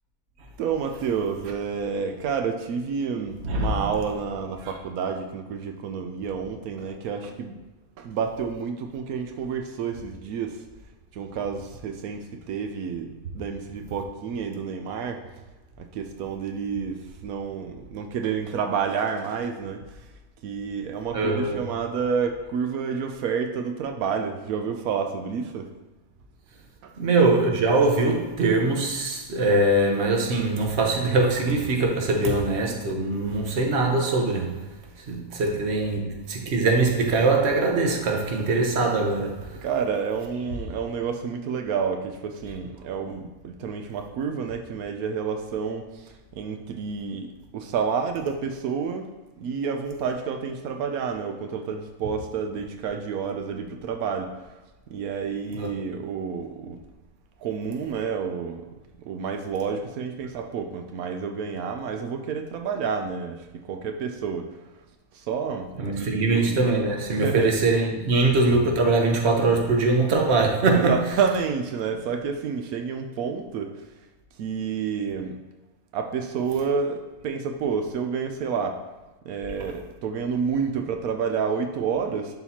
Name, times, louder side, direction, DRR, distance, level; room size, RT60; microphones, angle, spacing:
voice 1, 0.6-7.6 8.0-10.6 11.1-15.5 15.8-20.1 20.4-25.7 26.8-27.0 39.6-54.5 54.9-56.8 57.4-58.7 59.0-64.8 65.1-65.7 66.0-66.6 67.1-67.6 70.7-73.9 74.4-75.4 75.9-78.8 79.2-82.3, right 6 dB, 85° right, 1.1 m, -29 dB
voice 2, 3.4-3.8 21.1-21.6 27.0-39.6 55.5-55.7 65.8-71.0 79.6-79.7, right 3 dB, 55° right, 1.2 m, -22 dB
11.0 x 4.1 x 2.9 m
omnidirectional pair, 1.5 m